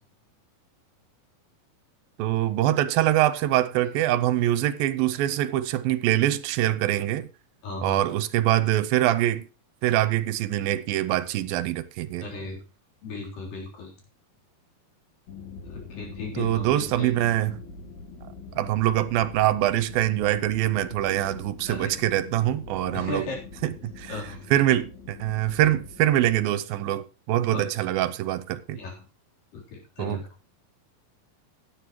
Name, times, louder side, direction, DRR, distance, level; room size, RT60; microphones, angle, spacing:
voice 1, 2.2-7.3 7.8-9.5 9.8-12.2 16.4-17.6 18.6-23.2 23.6-24.2 24.5-28.8 30.0-30.2, right 13 dB, 85° right, 2.5 m, -24 dB
voice 2, 7.6-8.0 12.2-12.6 13.0-13.9 15.6-17.3 21.7-22.0 22.9-23.4 24.1-24.5 27.5-27.6 28.8-29.1 29.5-30.3, left 3 dB, 70° left, 5.4 m, -36 dB
sound 1, 15.3-26.4, left 4 dB, 85° left, 4.2 m, -43 dB
16.5 x 9.8 x 3.1 m
omnidirectional pair, 4.1 m